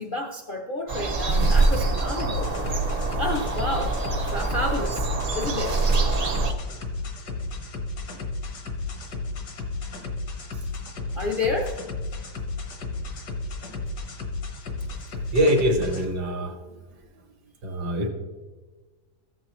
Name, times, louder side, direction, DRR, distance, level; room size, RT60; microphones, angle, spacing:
voice 1, 0.0-2.5 3.2-4.0 4.3-5.1 5.3-5.8 10.5-10.7 11.1-11.8, left 2 dB, 60° left, 0 dB, 0.5 m, -30 dB
sound 1, 0.9-6.5, right 3 dB, 65° right, 0.4 m, -24 dB
sound 2, 1.3-16.0, left 3 dB, 75° left, 1.7 m, -33 dB
voice 2, 15.3-16.8 17.6-18.1, equal, 80° right, 5 dB, 1.7 m, -24 dB
14.0 x 7.5 x 3.0 m, 1.3 s
omnidirectional pair, 1.7 m